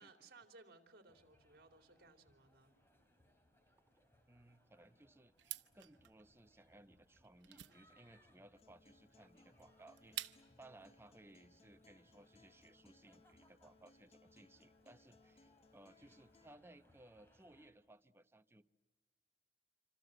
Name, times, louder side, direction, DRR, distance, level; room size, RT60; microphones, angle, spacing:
voice 1, 0.0-2.8, right 3 dB, 60° right, 6 dB, 3.1 m, -62 dB
sound 1, 1.1-17.7, equal, 15° left, 3.4 m, -72 dB
voice 2, 4.3-18.7, right 1 dB, 15° right, 10 dB, 0.8 m, -62 dB
sound 2, 5.4-10.7, right 14 dB, 90° right, 0.8 m, -51 dB
Acoustic guitar, 8.5-16.5, left 3 dB, 35° left, 0.9 m, -68 dB
26.5 x 26.0 x 7.9 m, 1.3 s
head